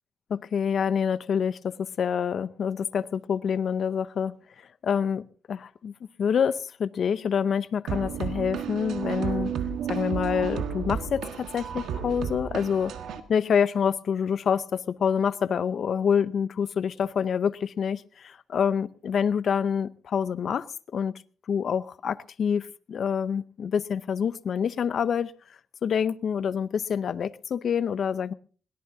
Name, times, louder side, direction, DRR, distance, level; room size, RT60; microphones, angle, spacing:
voice 1, 0.3-4.4 4.8-5.9 6.2-9.5 9.9-12.9 13.3-20.7 20.9-21.1 21.5-25.3 25.8-28.3, left 7 dB, 55° left, 0.6 m, -27 dB
sound 1, 7.9-13.2, right 8 dB, 85° right, 1.6 m, -32 dB
21.5 x 18.0 x 2.7 m
cardioid pair, 125°, 0 cm